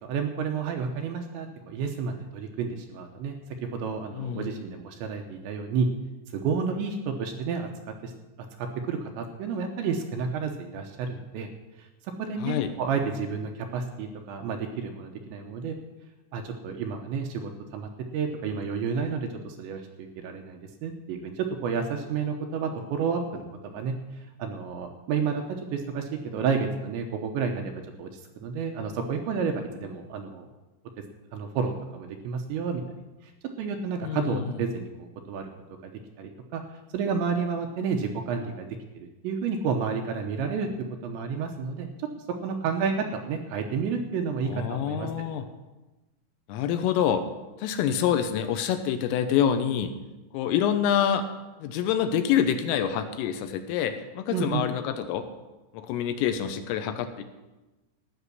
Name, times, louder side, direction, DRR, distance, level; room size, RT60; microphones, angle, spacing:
voice 1, 0.0-5.9 6.3-8.1 8.6-11.5 11.8-15.8 16.3-23.9 24.4-27.7 28.0-30.5 31.3-32.8 33.6-35.5 35.8-35.9 36.2-36.6 36.9-38.7 39.0-40.7 41.0-41.9 42.4-45.1 54.3-54.6, right 5 dB, 75° right, 3 dB, 2.9 m, -31 dB
voice 2, 4.1-4.5 12.4-12.7 34.0-34.5 44.5-45.5 46.5-47.2 47.6-49.9 50.3-51.3 51.6-55.3 55.7-57.2, left 9 dB, 80° left, 8 dB, 3.5 m, -26 dB
15.5 x 6.5 x 9.7 m, 1.1 s
omnidirectional pair, 6.0 m